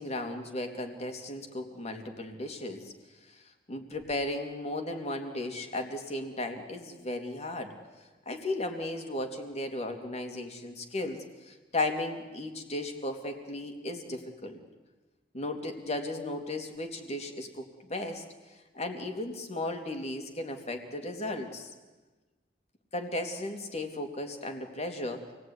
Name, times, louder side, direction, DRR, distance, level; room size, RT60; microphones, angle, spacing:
voice 1, 0.0-2.9 3.7-7.7 8.2-11.2 11.4-14.6 15.3-17.6 17.9-18.2 18.7-21.7 22.9-25.2, left 2 dB, 40° left, 4 dB, 3.3 m, -35 dB
28.0 x 19.0 x 9.8 m, 1.2 s
head